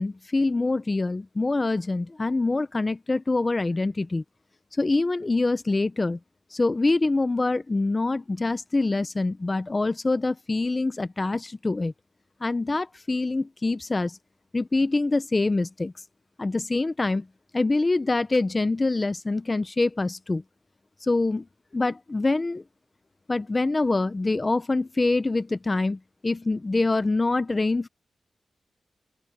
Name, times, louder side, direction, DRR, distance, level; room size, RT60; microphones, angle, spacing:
voice 1, 0.0-4.2 4.8-6.2 6.5-11.9 12.4-14.2 14.5-15.9 16.4-17.3 17.5-20.4 21.0-21.5 21.7-22.6 23.3-27.9, left 3 dB, 25° left, 0.6 m, -25 dB
open air
wide cardioid pair, 130°, 0 cm